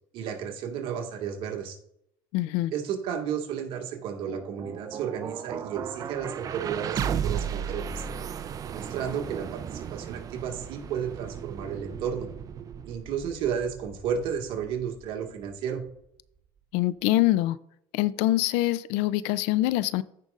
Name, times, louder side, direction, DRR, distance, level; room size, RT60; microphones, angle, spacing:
voice 1, 0.1-1.8 2.7-8.0 8.7-12.3 12.8-15.8, right 8 dB, 60° right, 1.7 m, -32 dB
voice 2, 2.3-2.7 16.7-17.6 17.9-20.0, left 16 dB, 75° left, 0.4 m, -24 dB
sound 1, 4.0-16.1, right 8 dB, 35° right, 0.5 m, -36 dB
15.5 x 5.3 x 2.5 m
supercardioid pair, 115°, 10 cm